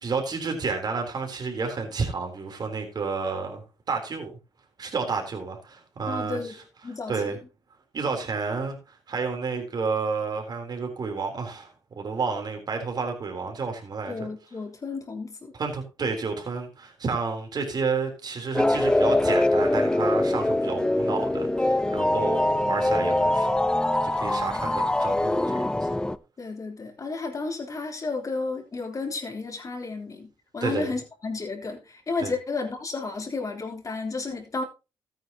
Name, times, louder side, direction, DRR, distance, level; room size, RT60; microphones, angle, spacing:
voice 1, 0.0-4.3 4.8-6.6 7.1-7.4 7.9-14.3 15.5-23.5 24.0-25.9 30.6-30.8 32.2-32.3, right 4 dB, 50° right, 3.7 m, -30 dB
voice 2, 6.1-6.5 6.8-7.2 14.1-15.5 24.6-24.7 26.4-34.6, left 3 dB, 40° left, 3.4 m, -32 dB
sound 1, 18.5-26.2, left 1 dB, 10° left, 0.7 m, -23 dB
14.0 x 9.3 x 2.9 m
cardioid pair, 70°, 9 cm